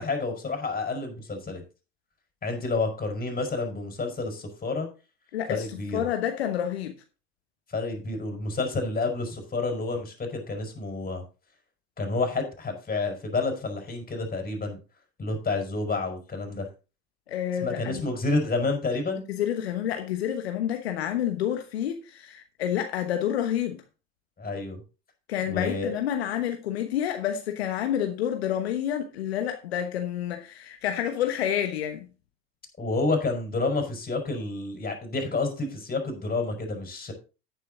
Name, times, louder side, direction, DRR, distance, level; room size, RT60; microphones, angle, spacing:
voice 1, 0.0-1.6 2.4-4.9 5.5-6.1 7.7-11.2 12.0-14.8 15.2-16.7 17.6-19.3 24.4-24.8 25.5-26.0 32.8-37.1, left 3 dB, 30° left, 4.7 m, -29 dB
voice 2, 5.3-6.9 17.3-18.0 19.3-23.8 25.3-32.1, left 10 dB, 80° left, 1.2 m, -29 dB
9.9 x 9.1 x 3.8 m
hypercardioid pair, 70°, 31 cm